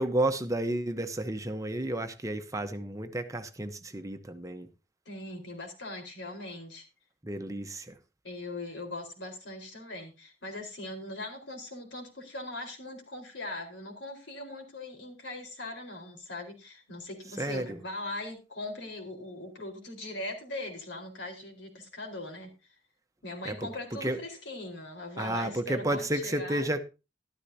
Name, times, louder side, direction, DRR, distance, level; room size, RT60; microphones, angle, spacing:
voice 1, 0.0-4.7 7.2-8.0 17.4-17.8 23.4-24.2 25.2-26.8, right 1 dB, 20° right, 0.9 m, -32 dB
voice 2, 5.1-6.9 8.2-22.5 23.2-26.7, left 2 dB, 75° left, 4.2 m, -40 dB
13.5 x 12.5 x 2.8 m
head